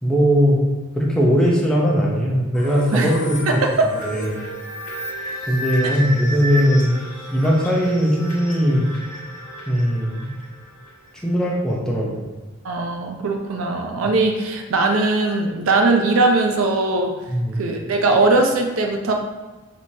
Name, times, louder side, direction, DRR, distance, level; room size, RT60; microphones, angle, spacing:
voice 1, 0.0-0.6 0.9-3.6 4.0-4.4 5.5-7.0 7.3-8.9 9.7-10.3 11.2-12.2 17.3-17.6, equal, 5° left, -4 dB, 0.7 m, -19 dB
sound 1, 2.5-11.1, right 1 dB, 35° left, 1.3 m, -32 dB
voice 2, 12.6-17.1 17.6-19.1, right 3 dB, 80° right, 2 dB, 0.5 m, -20 dB
6.1 x 3.0 x 2.7 m, 1.2 s
head